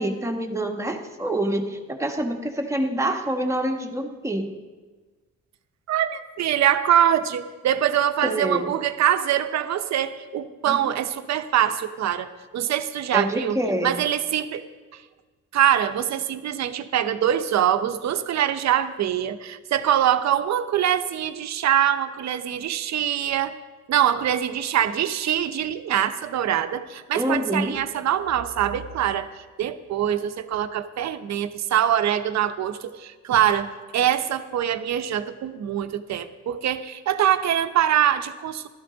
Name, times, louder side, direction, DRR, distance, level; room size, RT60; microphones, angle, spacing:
voice 1, 0.0-4.5 8.2-8.7 10.7-10.9 13.1-14.0 27.1-27.7, right 1 dB, 10° right, 3 dB, 1.2 m, -26 dB
voice 2, 5.9-14.6 15.5-23.6 23.9-29.3 29.6-38.7, right 10 dB, 65° right, 11 dB, 0.8 m, -24 dB
15.5 x 12.5 x 3.9 m, 1.3 s
cardioid pair, 110°, 29 cm